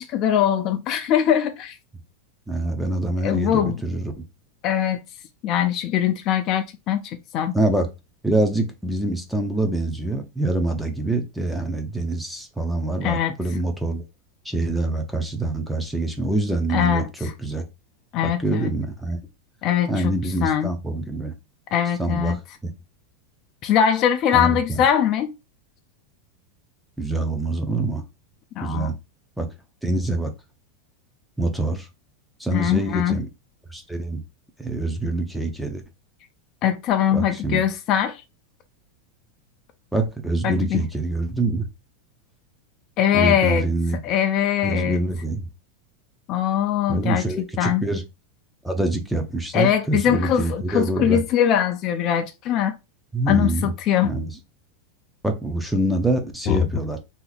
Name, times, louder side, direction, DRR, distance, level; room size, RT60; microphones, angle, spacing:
voice 1, 0.0-1.8 3.2-3.8 4.6-5.0 5.4-7.6 13.0-13.3 16.7-17.3 18.1-18.7 19.6-20.1 20.4-20.7 21.7-22.4 23.6-25.3 28.6-28.9 32.5-33.2 36.6-38.2 40.4-40.8 43.0-43.6 44.0-45.0 46.3-47.2 47.6-47.8 49.5-52.7 53.3-54.1 56.5-56.6, left 9 dB, 40° left, 0.5 m, -22 dB
voice 2, 2.5-4.1 7.5-7.9 8.2-14.0 14.4-17.6 18.2-19.2 19.9-21.3 22.0-22.4 24.3-24.8 27.0-28.0 28.6-29.0 29.4-29.5 29.8-30.3 31.4-31.9 32.4-33.3 33.7-34.2 34.6-35.8 37.1-37.6 39.9-41.7 43.1-44.0 44.6-45.4 46.9-48.0 48.6-51.2 53.1-53.7 54.0-54.3 55.2-57.0, right 2 dB, ahead, 0.6 m, -25 dB
2.9 x 2.5 x 3.9 m
supercardioid pair, 140°, 0 cm